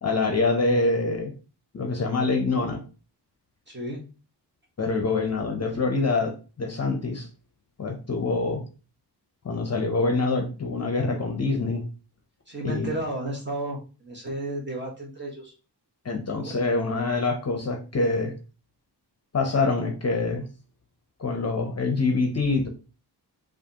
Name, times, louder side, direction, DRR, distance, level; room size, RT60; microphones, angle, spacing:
voice 1, 0.0-1.3 1.7-2.8 4.8-7.3 7.8-8.6 9.4-11.8 12.6-12.9 16.0-18.3 19.3-20.4 21.2-22.7, left 3 dB, 40° left, 3 dB, 0.7 m, -25 dB
voice 2, 3.7-4.1 12.5-15.5, right 1 dB, 25° right, -1 dB, 1.3 m, -33 dB
4.8 x 2.5 x 2.8 m, 0.34 s
wide cardioid pair, 125°, 41 cm